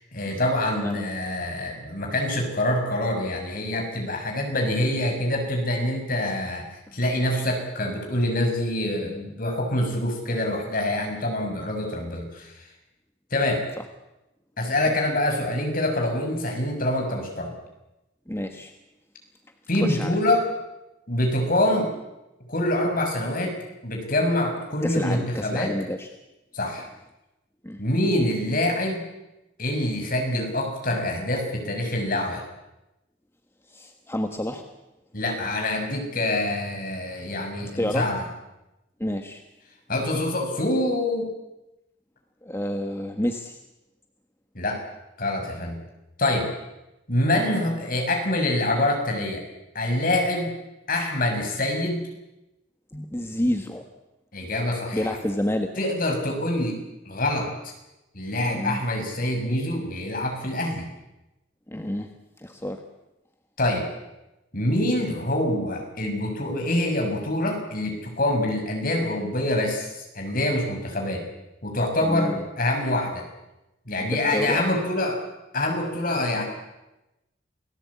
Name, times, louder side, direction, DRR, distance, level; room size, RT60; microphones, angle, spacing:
voice 1, 0.0-12.5 13.3-13.6 14.6-17.5 19.7-20.4 21.1-21.9 22.5-23.6 23.8-25.7 26.5-26.9 27.8-29.0 29.6-32.4 35.1-38.2 39.9-41.3 44.5-44.8 45.2-45.8 46.2-46.5 47.1-49.4 49.7-50.6 50.9-52.0 54.3-55.0 55.8-56.8 57.0-57.5 58.1-60.9 63.6-63.9 64.5-71.3 71.6-73.2 73.9-75.2 75.5-76.4, left 1 dB, 45° left, 2 dB, 6.4 m, -25 dB
voice 2, 18.3-18.7 19.8-20.2 24.8-26.1 27.6-27.8 33.6-34.7 37.8-38.1 39.0-39.4 42.4-43.6 52.9-53.9 54.9-55.7 58.5-58.8 61.7-62.1 62.4-62.8 72.0-72.4 74.0-74.6, left 1 dB, 15° left, 5 dB, 1.4 m, -29 dB
28.0 x 18.0 x 8.6 m, 0.97 s
head